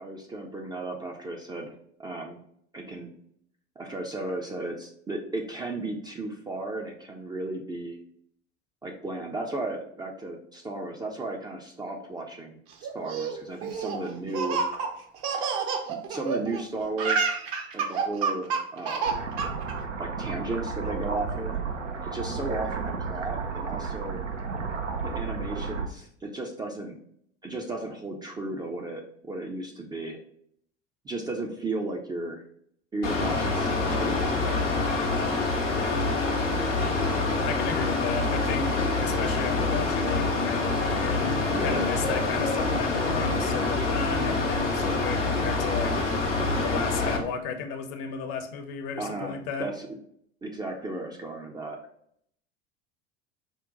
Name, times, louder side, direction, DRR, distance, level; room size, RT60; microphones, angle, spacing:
voice 1, 0.0-1.7 2.0-2.4 2.7-3.1 3.8-8.0 8.8-14.6 15.9-17.4 17.7-19.1 20.0-21.6 22.0-24.2 25.0-26.9 27.4-30.2 31.0-32.4 32.9-35.0 41.5-41.9 49.0-49.9 50.4-51.8, right 2 dB, 10° right, 0 dB, 0.4 m, -34 dB
Laughter, 12.8-16.6 16.9-19.7, right 5 dB, 45° right, 0.7 m, -29 dB
sound 1, 19.0-25.9, right 5 dB, 85° right, 0.5 m, -33 dB
Mechanical fan, 33.0-47.2, left 3 dB, 85° left, 0.9 m, -26 dB
voice 2, 37.4-46.0 46.6-49.7, left 6 dB, 45° left, 7 dB, 0.7 m, -34 dB
5.2 x 2.1 x 3.6 m, 0.68 s
figure-of-eight pair, 70°, 36 cm